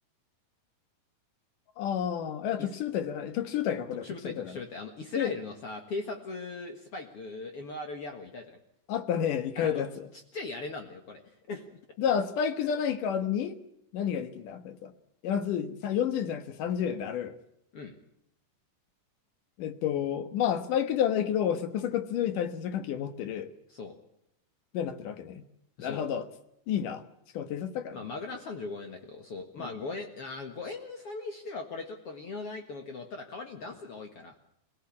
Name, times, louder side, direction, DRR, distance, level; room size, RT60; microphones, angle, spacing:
voice 1, 1.8-4.6 5.2-5.3 8.9-10.1 12.0-13.6 13.9-14.9 15.2-17.3 19.6-23.5 24.7-25.4 25.8-26.3 26.7-27.0 27.3-28.1 29.6-29.7, left 9 dB, 90° left, 3.0 m, -30 dB
voice 2, 4.0-8.6 9.6-9.8 10.3-11.2 11.5-11.8 17.7-18.0 23.7-23.9 25.8-26.0 27.9-34.4, left 3 dB, 50° left, 2.3 m, -39 dB
24.0 x 17.0 x 8.6 m
omnidirectional pair, 3.6 m